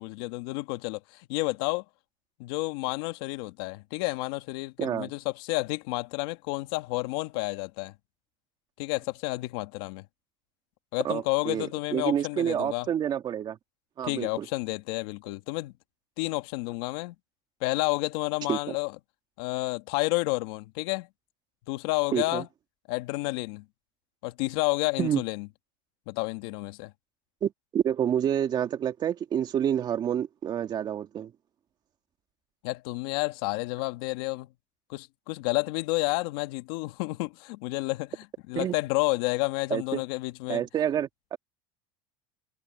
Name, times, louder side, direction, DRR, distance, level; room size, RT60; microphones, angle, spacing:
voice 1, 0.0-1.8 2.4-7.9 8.8-10.1 10.9-12.9 14.0-15.7 16.2-17.2 17.6-18.9 19.4-21.1 21.7-22.5 22.9-23.6 24.2-25.5 26.1-26.9 32.6-34.5 34.9-38.2 38.5-40.6, left 23 dB, 70° left, 1.9 m, -30 dB
voice 2, 4.8-5.1 11.0-13.6 14.0-14.5 18.5-18.7 22.1-22.4 25.0-25.2 27.4-31.3 38.6-38.7 39.7-40.0 40.5-41.4, right 9 dB, 35° right, 2.2 m, -28 dB
supercardioid pair, 135°, 13 cm